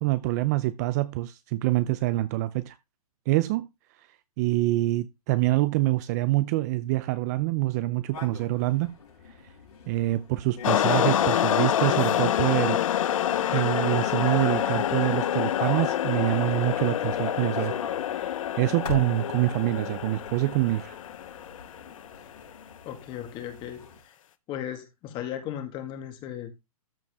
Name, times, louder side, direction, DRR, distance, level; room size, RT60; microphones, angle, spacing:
voice 1, 0.0-2.8 3.3-3.7 4.0-4.1 4.4-9.0 9.9-12.8 13.5-17.8 18.1-21.0, right 17 dB, 30° right, 0.4 m, -26 dB
sound 1, 8.1-24.0, left 5 dB, 90° left, 4.5 m, -39 dB
sound 2, 10.6-22.1, left 11 dB, 60° left, 0.8 m, -27 dB
voice 2, 22.8-24.1 24.5-26.6, left 10 dB, 25° left, 1.8 m, -36 dB
13.5 x 4.8 x 3.5 m
hypercardioid pair, 150°, 19 cm